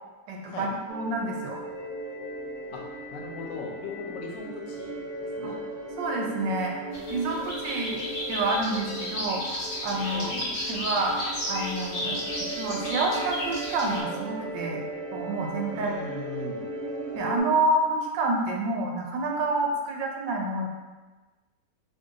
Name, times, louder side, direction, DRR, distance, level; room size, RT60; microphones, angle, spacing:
voice 1, 0.3-1.6 5.4-5.5 6.0-10.3 10.7-11.2 11.5-12.1 12.6-14.8 15.1-15.9 17.1-20.7, right 2 dB, 85° right, 0 dB, 1.3 m, -28 dB
sound 1, 0.9-17.4, right 2 dB, 60° right, 1.2 m, -37 dB
voice 2, 2.7-5.6 10.1-10.6 12.0-12.3 15.7-16.7, left 4 dB, 85° left, 0 dB, 1.3 m, -39 dB
sound 2, 6.9-14.0, left 1 dB, 45° left, 0.7 m, -33 dB
3.0 x 2.6 x 3.6 m, 1.2 s
omnidirectional pair, 1.9 m